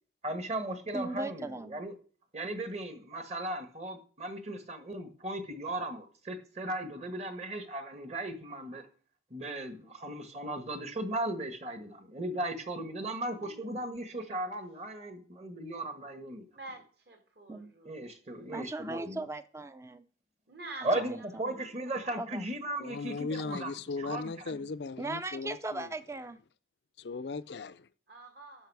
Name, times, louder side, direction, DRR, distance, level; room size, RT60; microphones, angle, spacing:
voice 1, 0.2-1.9 2.3-8.9 9.3-16.4 17.8-19.2 20.8-23.7 24.0-24.6, right 1 dB, 35° right, 1.4 m, -37 dB
voice 2, 0.9-1.8 17.5-17.7 18.5-20.0 21.0-21.6 22.2-22.5 25.0-26.4, right 2 dB, 15° right, 0.5 m, -38 dB
voice 3, 13.1-13.9 16.5-18.0 20.5-21.0 21.4-22.4 28.1-28.7, right 2 dB, 55° right, 2.3 m, -48 dB
voice 4, 22.8-25.9 27.0-27.9, left 4 dB, 65° left, 0.5 m, -38 dB
11.5 x 6.0 x 4.7 m
head